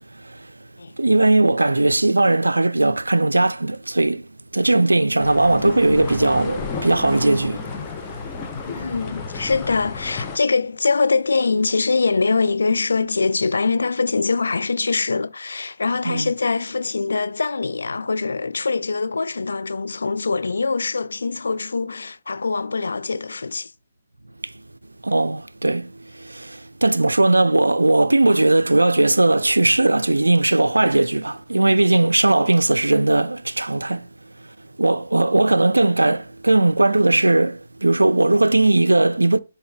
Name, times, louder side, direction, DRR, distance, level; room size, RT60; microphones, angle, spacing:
voice 1, 0.1-0.5 1.0-4.3 4.5-7.7 16.1-16.3 24.4-24.5 25.0-34.1 34.8-39.4, right 2 dB, 90° right, 0.4 m, -18 dB
sound 1, 5.2-10.4, left 4 dB, 25° left, 1.1 m, -32 dB
voice 2, 8.6-23.7, left 4 dB, 75° left, 0.3 m, -23 dB
6.9 x 4.2 x 3.9 m
figure-of-eight pair, 140°, 0 cm